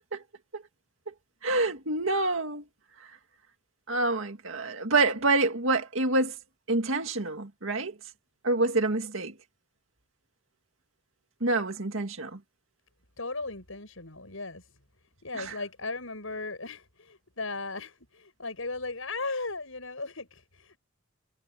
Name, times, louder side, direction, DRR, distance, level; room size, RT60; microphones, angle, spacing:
voice 1, 1.4-2.6 3.0-3.1 3.9-6.4 6.7-7.9 8.4-9.3 11.4-12.4 15.4-15.5, right 2 dB, 75° right, 2.1 m, -27 dB
voice 2, 13.2-14.7 15.2-20.8, left 3 dB, 80° left, 7.4 m, -37 dB
head